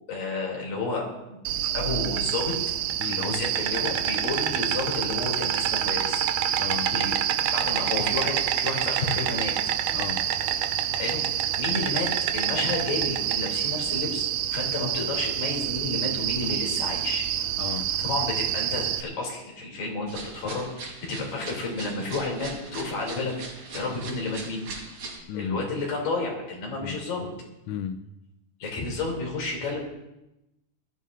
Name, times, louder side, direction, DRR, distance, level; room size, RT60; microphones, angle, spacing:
voice 1, 0.1-1.4 1.7-2.6 3.1-7.1 7.5-9.5 11.0-17.3 18.0-24.6 25.3-27.3 28.6-29.8, left 3 dB, 60° left, -1 dB, 4.9 m, -31 dB
Insect, 1.4-19.0, right 11 dB, 85° right, 1.8 m, -27 dB
voice 2, 3.0-3.3 6.6-6.9 9.9-10.4 17.6-17.9 25.3-25.6 26.8-27.0 27.7-28.0, left 8 dB, 85° left, 8 dB, 1.7 m, -34 dB
sound 1, 20.1-25.2, right 3 dB, 60° right, 5.6 m, -40 dB
22.5 x 14.0 x 2.7 m, 0.93 s
omnidirectional pair, 4.5 m